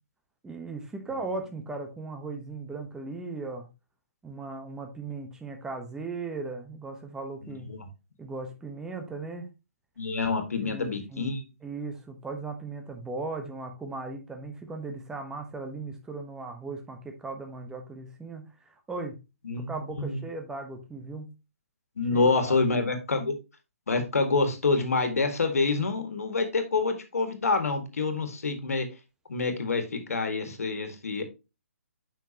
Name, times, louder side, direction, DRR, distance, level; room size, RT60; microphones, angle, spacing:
voice 1, 0.4-3.7 4.2-7.7 8.2-9.5 10.6-11.3 11.6-19.2 19.6-21.3 22.1-22.2 22.5-22.6, right 3 dB, 10° right, 4 dB, 1.0 m, -37 dB
voice 2, 7.4-7.9 10.0-11.4 19.4-20.2 22.0-23.3 23.9-28.9 29.3-31.3, left 3 dB, 75° left, 7 dB, 1.8 m, -27 dB
7.1 x 5.8 x 2.9 m, 0.26 s
hypercardioid pair, 140°, 8 cm